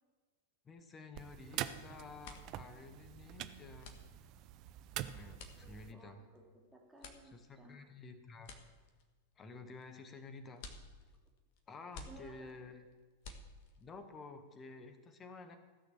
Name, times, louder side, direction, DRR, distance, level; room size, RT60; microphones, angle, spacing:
voice 1, 0.6-4.0 5.1-6.2 7.2-8.5 9.4-10.6 11.7-12.8 13.8-15.6, left 3 dB, 20° left, 8 dB, 1.5 m, -52 dB
sound 1, 1.1-5.9, right 12 dB, 40° right, 0.6 m, -45 dB
sound 2, 2.2-14.0, left 3 dB, 50° left, 1.5 m, -55 dB
voice 2, 5.2-7.9 12.1-12.7, right 2 dB, 5° right, -1 dB, 2.7 m, -59 dB
15.5 x 6.6 x 7.2 m, 1.4 s
figure-of-eight pair, 90°, 0 cm